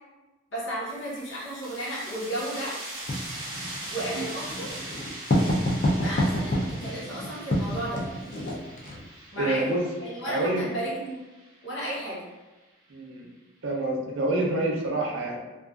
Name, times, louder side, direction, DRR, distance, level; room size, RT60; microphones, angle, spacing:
voice 1, 0.5-2.8 3.9-4.7 5.4-5.5 6.0-8.0 9.3-9.7 10.0-11.2 11.6-12.2, right 1 dB, 60° left, -7 dB, 0.9 m, -33 dB
sound 1, 0.9-12.2, right 1 dB, 20° right, 0.6 m, -41 dB
Writing, 3.1-9.0, left 1 dB, 40° left, 0.4 m, -28 dB
voice 2, 9.4-9.8 10.2-10.6 12.9-13.3 13.6-15.4, right 2 dB, 65° right, -1 dB, 0.5 m, -27 dB
2.4 x 2.3 x 2.3 m, 1.1 s
head